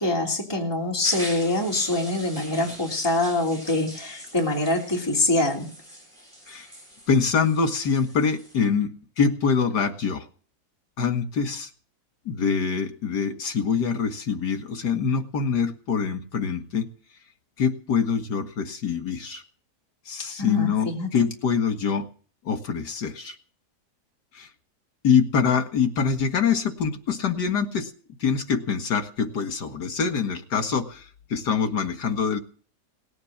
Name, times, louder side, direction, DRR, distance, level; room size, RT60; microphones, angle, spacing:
voice 1, 0.0-5.7 20.2-21.1, left 2 dB, 15° left, -1 dB, 3.2 m, -25 dB
sound 1, 1.0-8.5, equal, 15° right, 7.7 m, -42 dB
voice 2, 7.1-10.3 11.0-11.7 12.3-16.9 17.6-19.4 20.1-22.1 22.4-23.4 24.3-24.5 25.0-27.9 28.2-32.4, left 6 dB, 75° left, 7 dB, 2.3 m, -24 dB
18.5 x 9.6 x 7.4 m, 0.41 s
omnidirectional pair, 1.8 m